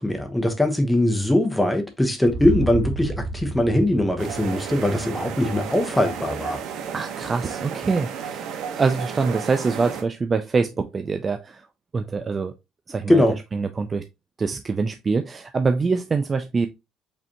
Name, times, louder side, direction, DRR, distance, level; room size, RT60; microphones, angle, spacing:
voice 1, 0.0-6.6 13.1-13.4, left 1 dB, 5° left, 1.0 m, -21 dB
sound 1, 2.2-6.3, right 3 dB, 55° right, 2.5 m, -32 dB
sound 2, 4.2-10.0, right 7 dB, 80° right, 1.0 m, -33 dB
voice 2, 6.9-11.7 11.9-12.5 12.9-13.2 13.5-14.0 14.4-16.7, right 4 dB, 25° right, 0.4 m, -24 dB
5.1 x 3.3 x 2.9 m
cardioid pair, 130°, 0 cm